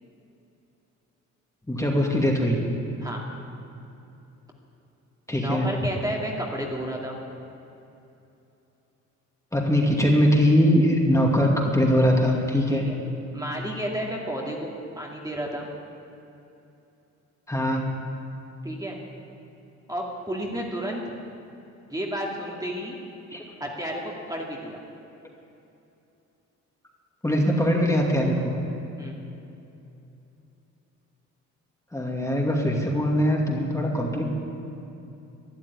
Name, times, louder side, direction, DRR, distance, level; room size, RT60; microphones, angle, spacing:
voice 1, 1.7-2.6 5.3-5.8 9.5-12.9 17.5-17.9 23.3-23.4 27.2-28.6 31.9-34.2, equal, 10° left, -1 dB, 2.4 m, -22 dB
voice 2, 5.4-7.1 12.7-13.0 13.3-14.7 15.0-15.7 18.6-19.0 19.9-21.2 21.9-23.0 23.6-24.8 29.0-29.2, equal, 10° right, -1 dB, 2.3 m, -31 dB
13.0 x 11.0 x 9.8 m, 2.8 s
cardioid pair, 90°, 30 cm